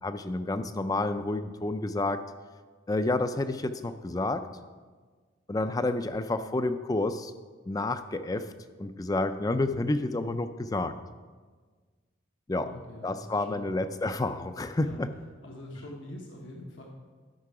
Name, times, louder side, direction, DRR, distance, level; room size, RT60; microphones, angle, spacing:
voice 1, 0.0-2.2 2.9-4.5 5.5-7.3 7.7-8.5 8.8-10.9 12.5-12.7 13.0-15.1, left 2 dB, 20° left, 11 dB, 0.4 m, -29 dB
voice 2, 12.6-13.7 14.8-15.0 15.4-16.8, left 1 dB, 80° left, 0 dB, 1.1 m, -44 dB
12.0 x 5.7 x 4.8 m, 1.5 s
head